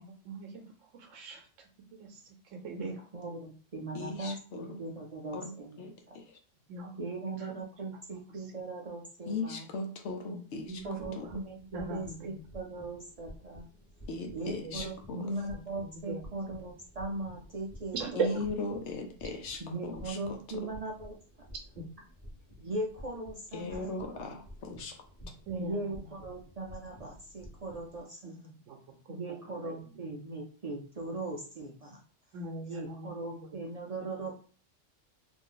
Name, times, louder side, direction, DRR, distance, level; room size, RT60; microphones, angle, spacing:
voice 1, 0.0-1.5 1.9-3.0 6.7-7.0 7.4-7.6 8.1-8.5 10.3-11.3 11.7-12.4 14.5-15.3 15.8-16.3 17.9-18.3 21.8-21.9 25.5-26.2 28.2-28.8 29.1-30.0 32.3-33.1 33.4-33.6 34.0-34.3, right 4 dB, 90° right, 2 dB, 1.0 m, -40 dB
voice 2, 2.8-6.2 7.0-9.6 10.8-13.6 14.3-18.2 19.6-21.1 22.6-23.9 25.6-28.4 29.1-32.0 32.6-34.3, right 2 dB, 60° right, -1 dB, 0.4 m, -39 dB
voice 3, 3.9-4.8 5.3-6.4 9.3-10.8 11.2-11.3 14.1-15.3 18.2-20.7 23.5-25.0, left 3 dB, 70° left, 3 dB, 0.9 m, -38 dB
sound 1, 10.7-28.0, equal, 25° left, 1.1 m, -52 dB
2.6 x 2.5 x 3.8 m, 0.42 s
omnidirectional pair, 1.3 m